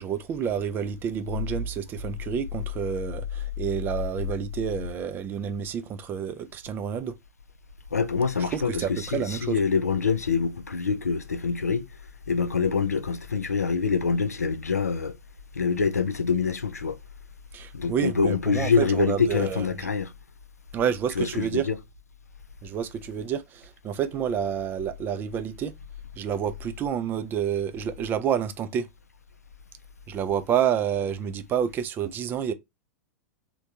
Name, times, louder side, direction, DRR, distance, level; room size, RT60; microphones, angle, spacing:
voice 1, 0.0-7.1 8.4-9.6 17.5-19.9 20.7-21.7 22.6-25.7 26.2-28.9 30.1-32.5, right 8 dB, 25° right, 0.3 m, -29 dB
voice 2, 7.9-11.9 12.3-15.2 15.5-17.0 17.7-20.1 21.2-21.8, left 5 dB, 85° left, 0.4 m, -25 dB
3.3 x 2.2 x 2.7 m
figure-of-eight pair, 100°, 8 cm